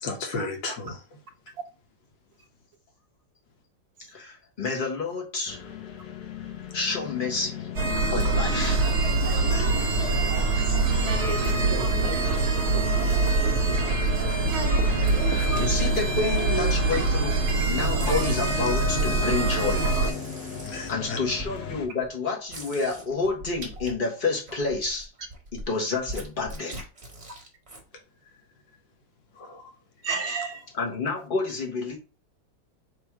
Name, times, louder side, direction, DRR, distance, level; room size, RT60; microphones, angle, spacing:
voice 1, 0.0-1.0 9.4-9.7 12.3-13.0 13.9-14.4 14.7-15.5 20.6-21.2 29.3-29.7, left 4 dB, 85° left, 1.7 m, -37 dB
voice 2, 4.1-5.6 6.7-7.7 8.1-8.8 15.2-15.3 15.6-17.4 17.6-19.9 20.7-25.1 25.7-26.8 30.8-32.0, left 3 dB, 35° left, 1.1 m, -29 dB
sound 1, 5.5-21.9, left 7 dB, 65° left, 1.4 m, -36 dB
sound 2, 7.8-20.1, right 3 dB, 50° right, 0.9 m, -24 dB
voice 3, 10.3-10.7 12.1-12.6 13.4-13.5 15.5-15.6 16.9-17.0 30.0-30.6, right 4 dB, 65° right, 0.3 m, -33 dB
sound 3, 13.6-14.1 14.8-17.5 18.0-21.5 22.0-22.1 22.5-23.9 24.3-27.8, right 1 dB, 25° right, 1.0 m, -42 dB
3.4 x 3.0 x 4.6 m
omnidirectional pair, 1.9 m